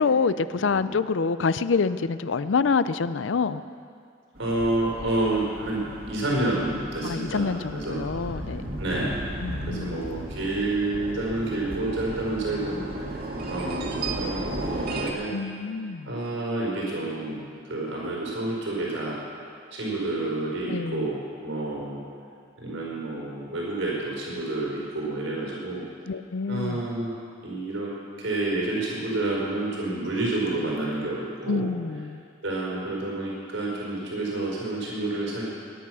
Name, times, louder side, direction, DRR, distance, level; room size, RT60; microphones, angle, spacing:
voice 1, 0.0-3.6 7.0-8.6 9.4-10.0 15.3-16.1 20.7-21.1 26.1-26.8 31.5-32.2, left 5 dB, 75° left, 14 dB, 0.5 m, -26 dB
sound 1, 4.3-15.1, right 1 dB, 50° right, 1.9 m, -35 dB
voice 2, 4.4-8.0 8.8-9.2 9.7-15.3 16.0-17.4 17.7-19.2 19.7-22.0 22.6-25.8 26.5-27.1 27.4-27.9 28.2-31.7 32.4-35.4, right 2 dB, 85° right, -4 dB, 4.7 m, -29 dB
19.0 x 11.0 x 6.2 m, 2.3 s
head